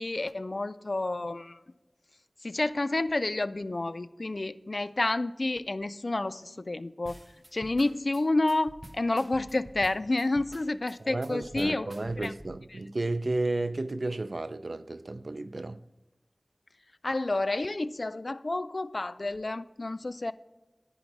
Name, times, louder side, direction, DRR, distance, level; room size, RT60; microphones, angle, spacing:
voice 1, 0.0-1.6 2.4-7.2 7.5-11.9 12.2-12.3 17.0-20.3, left 2 dB, 65° left, 0.3 m, -30 dB
sound 1, 7.1-12.6, right 1 dB, 20° right, 0.6 m, -48 dB
voice 2, 11.0-15.8, right 2 dB, 75° right, 0.3 m, -32 dB
10.5 x 5.4 x 4.6 m
wide cardioid pair, 45°, 0 cm